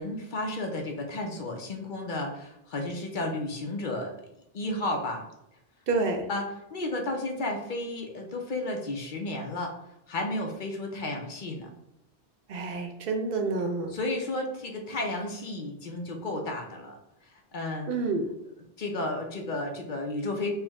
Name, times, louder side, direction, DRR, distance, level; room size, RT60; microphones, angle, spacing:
voice 1, 0.0-4.1 4.5-5.3 6.3-9.7 10.1-11.7 13.9-17.0 17.5-18.0 18.8-20.5, left 2 dB, 55° left, 2 dB, 0.7 m, -32 dB
voice 2, 5.9-6.3 12.5-13.9 17.9-18.2, right 3 dB, 65° right, 4 dB, 0.8 m, -28 dB
4.5 x 2.1 x 3.4 m, 0.84 s
omnidirectional pair, 1.1 m